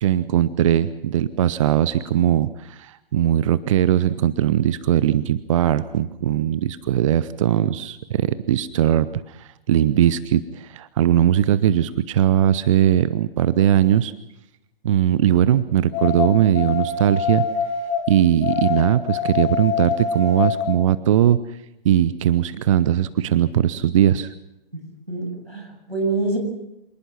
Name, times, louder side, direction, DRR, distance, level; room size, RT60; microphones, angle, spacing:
voice 1, 0.0-14.1 14.8-17.5 18.1-21.4 21.8-24.3, right 11 dB, 35° right, 16 dB, 0.7 m, -19 dB
sound 1, 15.9-18.1 18.4-20.7, left 7 dB, 25° left, 7.1 m, -25 dB
voice 2, 24.7-26.4, right 3 dB, 90° right, 3 dB, 7.3 m, -26 dB
26.5 x 19.5 x 6.0 m, 0.87 s
figure-of-eight pair, 120°, 29 cm